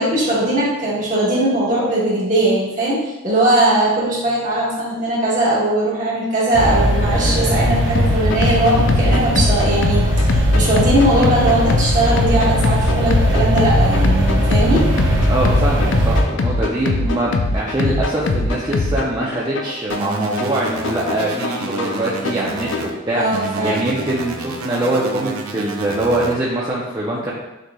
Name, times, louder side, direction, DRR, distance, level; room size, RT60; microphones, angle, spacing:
voice 1, 0.0-14.9 23.1-23.8, right 1 dB, 40° right, -7 dB, 1.4 m, -19 dB
sound 1, 6.5-16.2, equal, 60° right, 0.8 m, -18 dB
sound 2, 8.0-23.0, left 2 dB, 60° left, 0.4 m, -22 dB
voice 2, 15.3-27.3, right 1 dB, 20° right, -6 dB, 0.5 m, -23 dB
sound 3, 19.9-22.9 23.3-26.3, right 2 dB, 90° right, 0.5 m, -29 dB
6.5 x 3.2 x 2.3 m, 1.0 s
head